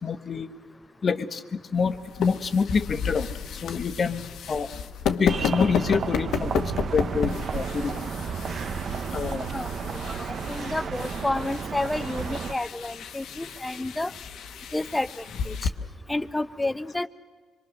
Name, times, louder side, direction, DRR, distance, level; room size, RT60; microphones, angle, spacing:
voice 1, 0.0-0.5 1.0-4.2 4.5-4.7 5.2-8.0 9.1-9.5, left 5 dB, 45° left, 10 dB, 1.1 m, -27 dB
sound 1, 1.7-15.7, left 7 dB, 75° left, 1.1 m, -33 dB
sound 2, 5.3-12.5, right 6 dB, 55° right, 0.8 m, -32 dB
voice 2, 9.5-14.1 14.7-15.7 16.1-17.1, left 2 dB, 10° left, 13 dB, 0.7 m, -30 dB
25.0 x 22.5 x 6.5 m, 1.5 s
cardioid pair, 90°, 0 cm